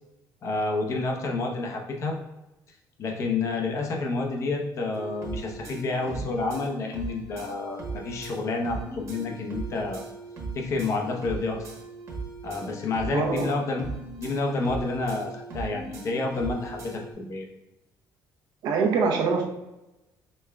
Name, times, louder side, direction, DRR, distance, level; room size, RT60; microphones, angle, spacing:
voice 1, 0.4-2.2 3.0-10.0 10.5-11.7 12.4-13.8 14.2-17.5, left 3 dB, 40° left, 1 dB, 0.8 m, -29 dB
sound 1, 4.9-17.1, right 3 dB, 40° right, 1.2 m, -38 dB
voice 2, 13.1-13.5 18.6-19.5, right 5 dB, 70° right, 2 dB, 0.8 m, -24 dB
5.4 x 3.6 x 2.3 m, 0.98 s
cardioid pair, 150°, 7 cm